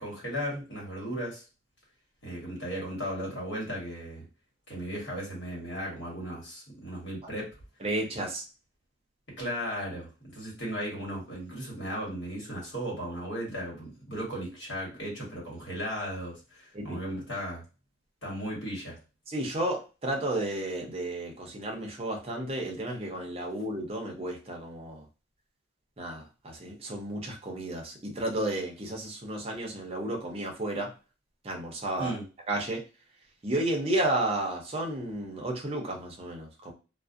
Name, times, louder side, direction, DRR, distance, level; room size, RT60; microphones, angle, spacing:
voice 1, 0.0-1.4 2.2-4.2 4.7-7.5 9.4-17.6 18.2-19.0 32.0-32.2, equal, 65° left, -3 dB, 1.2 m, -36 dB
voice 2, 7.8-8.4 16.7-17.0 19.3-25.0 26.0-30.9 31.4-32.1 32.5-32.8 33.4-36.7, right 1 dB, 30° right, 0 dB, 0.6 m, -32 dB
2.4 x 2.0 x 2.5 m, 0.32 s
head